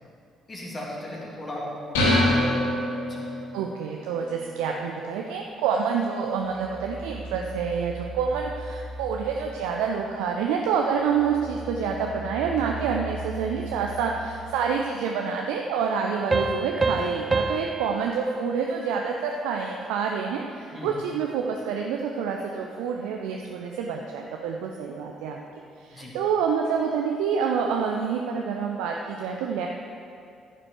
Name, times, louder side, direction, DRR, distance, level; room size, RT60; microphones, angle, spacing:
voice 1, 0.5-2.6 3.0-3.2 20.7-20.9 25.9-26.1, left 1 dB, 35° left, -4 dB, 3.1 m, -37 dB
sound 1, 1.9-3.6, left 1 dB, 70° left, 1.8 m, -23 dB
voice 2, 3.5-25.4 25.8-29.7, right 6 dB, 70° right, 1 dB, 0.6 m, -27 dB
sound 2, 6.4-10.3 10.7-15.2, right 2 dB, 5° right, 2.9 m, -39 dB
sound 3, 16.3-19.6, right 3 dB, 25° right, 0.8 m, -28 dB
13.5 x 7.6 x 4.8 m, 2.5 s
figure-of-eight pair, 45°, 0 cm